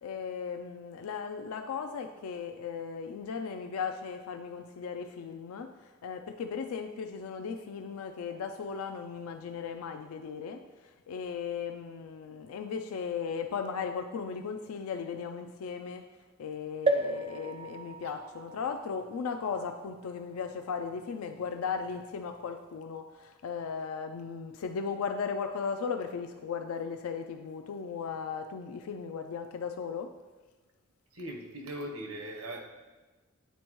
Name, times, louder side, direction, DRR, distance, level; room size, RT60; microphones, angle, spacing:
voice 1, 0.0-5.7 6.0-10.6 11.1-16.0 16.4-30.1, left 6 dB, 85° left, 6 dB, 0.4 m, -36 dB
sound 1, 16.9-20.5 21.1-21.2 21.4-21.5, right 2 dB, 25° right, 0.4 m, -34 dB
voice 2, 31.1-32.6, right 1 dB, 90° right, 2 dB, 1.0 m, -39 dB
9.2 x 4.3 x 3.0 m, 1.2 s
head